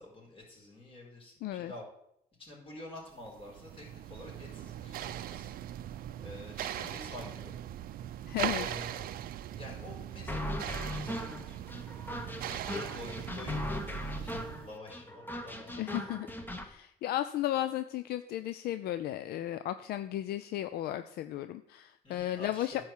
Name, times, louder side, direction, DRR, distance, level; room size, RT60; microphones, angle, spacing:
voice 1, 0.0-1.8 2.4-5.5 6.2-7.6 8.5-9.1 9.5-11.6 12.6-16.6 22.0-22.8, left 2 dB, 35° left, -2 dB, 4.5 m, -48 dB
voice 2, 1.4-1.7 8.3-8.7 15.8-16.3 16.6-22.8, left 13 dB, 70° left, 11 dB, 0.5 m, -34 dB
sound 1, 3.2-14.7, right 11 dB, 60° right, 0.5 m, -40 dB
sound 2, 10.3-16.7, left 1 dB, 10° left, 1.1 m, -38 dB
10.5 x 4.7 x 7.3 m, 0.76 s
cardioid pair, 110°, 17 cm